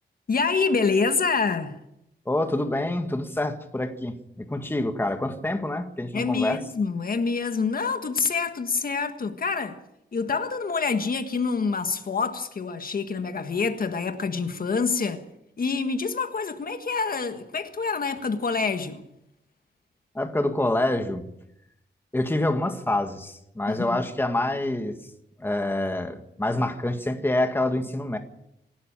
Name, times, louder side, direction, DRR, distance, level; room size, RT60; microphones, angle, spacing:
voice 1, 0.3-1.8 6.1-9.8 10.1-15.2 15.6-19.1 23.7-24.0, left 4 dB, 50° left, 1.6 m, -26 dB
voice 2, 2.3-6.6 20.2-21.2 22.1-25.0 25.4-28.2, left 1 dB, 10° left, 1.8 m, -26 dB
27.0 x 12.5 x 8.9 m
wide cardioid pair, 140°, 19 cm